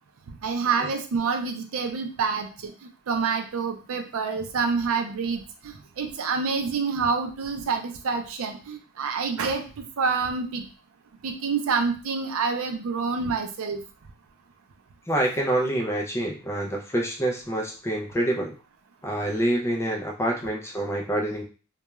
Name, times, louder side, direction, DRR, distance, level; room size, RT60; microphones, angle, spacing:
voice 1, 0.4-2.7 3.1-5.4 6.0-10.6 11.2-13.8, right 5 dB, 65° right, 5 dB, 0.4 m, -27 dB
voice 2, 15.1-18.5 19.0-21.4, right 1 dB, 10° left, 0 dB, 0.4 m, -26 dB
2.3 x 2.2 x 3.0 m, 0.35 s
head